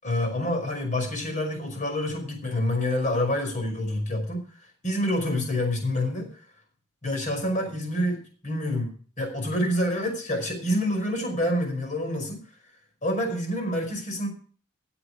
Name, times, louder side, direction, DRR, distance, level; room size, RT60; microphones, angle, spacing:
voice 1, 0.0-4.4 4.8-6.3 7.0-12.4 13.0-14.3, left 1 dB, 35° left, 4 dB, 5.2 m, -27 dB
17.0 x 8.2 x 4.8 m, 0.42 s
head